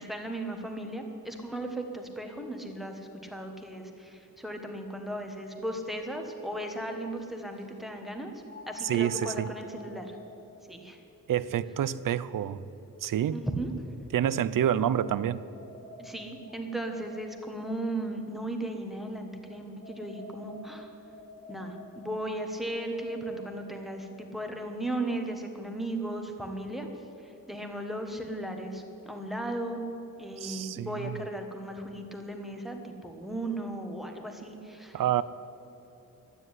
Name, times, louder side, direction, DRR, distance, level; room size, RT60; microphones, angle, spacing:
voice 1, 0.0-10.2 10.7-11.0 13.3-13.7 16.0-20.9 21.5-26.9 27.2-29.8 30.2-35.2, right 1 dB, ahead, 4 dB, 1.3 m, -36 dB
sound 1, 5.9-6.0 8.5-13.6 14.4-18.1 19.1-23.7, left 2 dB, 30° left, 1.2 m, -49 dB
voice 2, 8.8-9.5 11.3-12.6 13.0-13.4 14.1-15.4 30.4-31.2 34.9-35.2, right 10 dB, 75° right, 16 dB, 0.6 m, -28 dB
12.5 x 9.6 x 9.6 m, 2.9 s
wide cardioid pair, 160°, 33 cm